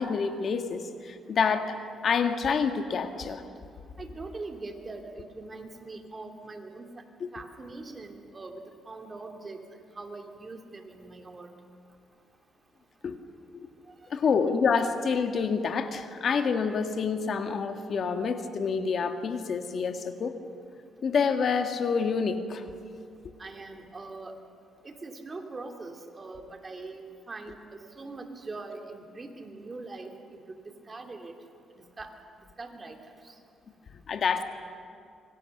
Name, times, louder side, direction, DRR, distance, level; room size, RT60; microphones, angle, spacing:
voice 1, 0.0-1.8 2.0-3.4 7.2-7.3 13.0-13.2 13.5-13.7 14.1-20.4 21.0-22.6 34.1-34.4, left 5 dB, 55° left, 7 dB, 1.7 m, -27 dB
voice 2, 4.0-6.9 7.3-9.6 10.0-11.5 13.9-14.0 23.4-24.3 24.8-30.6 30.9-31.3 32.0-32.1 32.6-33.0 33.2-33.3, right 3 dB, 30° right, 4 dB, 2.9 m, -42 dB
26.5 x 24.0 x 6.7 m, 2.4 s
cardioid pair, 90°, 0 cm